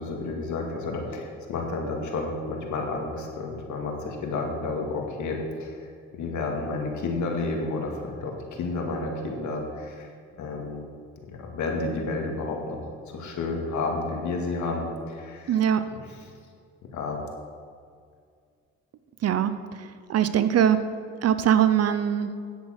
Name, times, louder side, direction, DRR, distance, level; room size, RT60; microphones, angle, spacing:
voice 1, 0.0-5.9 6.1-10.1 10.4-10.8 11.3-12.8 13.1-15.6 15.9-16.0 16.9-17.2, left 3 dB, 70° left, 1 dB, 2.2 m, -31 dB
voice 2, 15.5-15.8 19.2-19.5 20.1-20.8 21.2-22.3, right 9 dB, 55° right, 12 dB, 0.6 m, -21 dB
10.0 x 8.2 x 6.5 m, 2.2 s
cardioid pair, 90°, 30 cm